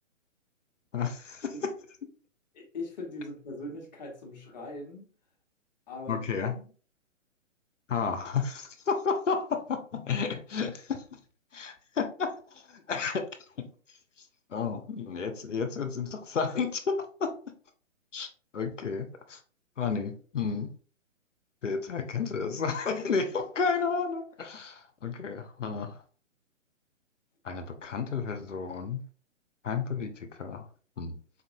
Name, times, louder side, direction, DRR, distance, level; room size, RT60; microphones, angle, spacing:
voice 1, 0.9-1.5 6.1-6.5 7.9-11.0 11.5-12.4 12.7-13.2 13.6-13.7 14.5-17.4 18.1-18.3 18.5-19.4 19.8-20.7 21.6-26.0 27.4-29.0 29.6-30.6 31.0-31.2, left 5 dB, 70° left, 0.8 m, -31 dB
voice 2, 2.5-5.1 5.9-6.3 6.5-6.6, left 2 dB, 35° left, 1.0 m, -40 dB
4.1 x 2.6 x 2.6 m
figure-of-eight pair, 130°, 39 cm